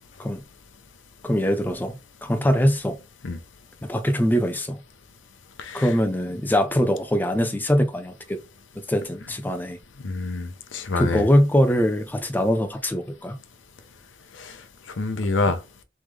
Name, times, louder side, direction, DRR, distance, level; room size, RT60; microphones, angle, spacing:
voice 1, 1.2-3.0 3.8-4.8 5.7-8.4 8.8-9.8 11.0-13.4, equal, 10° left, 0.4 m, -22 dB
voice 2, 10.0-11.2 14.4-14.5 15.0-15.6, left 3 dB, 80° left, 0.6 m, -26 dB
3.5 x 3.1 x 3.3 m
head